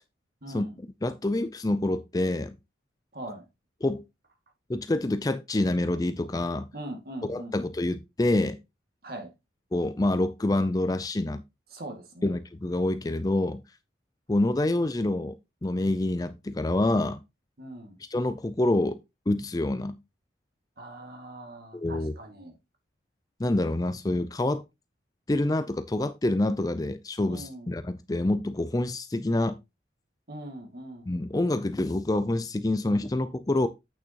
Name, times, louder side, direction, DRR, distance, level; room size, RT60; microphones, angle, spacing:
voice 1, 0.4-0.8 3.1-3.5 6.7-7.6 9.0-9.3 11.7-12.3 17.6-18.0 20.8-22.5 27.3-27.7 30.3-31.1, right 1 dB, 50° right, 2.2 m, -41 dB
voice 2, 1.0-2.5 3.8-4.0 4.7-6.7 7.3-8.6 9.7-11.4 12.2-13.6 14.3-15.3 15.6-17.2 18.1-19.0 19.3-20.0 21.7-22.1 23.4-24.6 25.3-29.6 31.1-33.7, left 1 dB, 20° left, 0.4 m, -27 dB
8.6 x 6.4 x 2.9 m
head